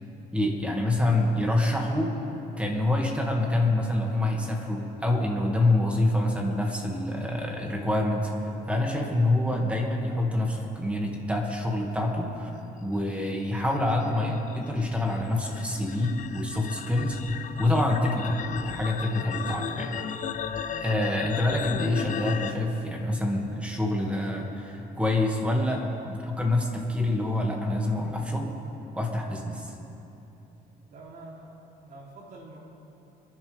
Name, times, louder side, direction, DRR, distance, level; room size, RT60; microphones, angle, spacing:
voice 1, 0.3-2.2 2.6-8.3 8.7-12.5 12.8-19.9 20.8-28.6 29.0-29.7, left 1 dB, 5° right, 0 dB, 2.3 m, -26 dB
sound 1, 13.2-22.5, left 7 dB, 50° left, 0.9 m, -35 dB
voice 2, 30.9-32.6, right 2 dB, 60° right, -3 dB, 3.6 m, -46 dB
27.0 x 11.5 x 3.6 m, 2.9 s
cardioid pair, 110°, 17 cm